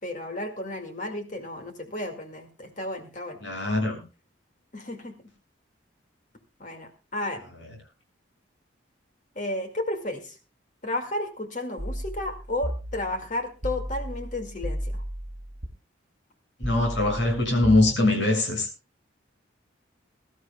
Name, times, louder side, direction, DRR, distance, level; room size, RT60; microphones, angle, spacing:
voice 1, 0.0-3.4 4.7-5.1 6.6-7.4 9.4-10.4 10.8-15.0, left 1 dB, 40° left, 4 dB, 2.1 m, -33 dB
voice 2, 3.4-4.0 16.6-18.7, left 2 dB, 65° left, 2 dB, 6.7 m, -22 dB
sound 1, 11.8-15.7 16.6-17.9, equal, 35° right, 2.7 m, -34 dB
23.0 x 13.0 x 2.3 m, 0.31 s
head